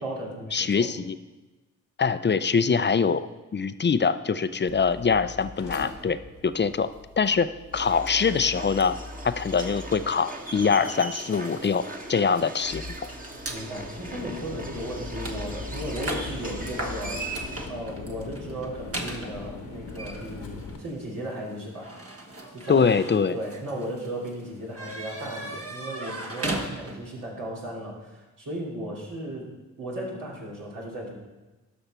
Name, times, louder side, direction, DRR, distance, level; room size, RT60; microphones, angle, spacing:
voice 1, 0.0-0.9 13.5-17.4 17.7-21.9 22.5-22.9 23.3-29.4 29.8-31.1, right 1 dB, 75° right, -5 dB, 3.1 m, -36 dB
voice 2, 0.5-1.2 2.0-3.3 3.5-6.2 6.4-6.9 7.2-9.0 9.2-11.8 12.1-13.0 22.7-23.3, left 5 dB, 35° left, 13 dB, 0.5 m, -23 dB
Mechanical fan, 4.7-20.8, left 3 dB, 80° left, 1.4 m, -41 dB
sound 1, 7.7-17.7, right 2 dB, 25° right, 1.5 m, -39 dB
sound 2, 11.3-13.6 14.3-14.5 14.7-27.2, right 1 dB, 45° right, 1.5 m, -38 dB
12.5 x 5.9 x 4.4 m, 1.2 s
supercardioid pair, 45°, 33 cm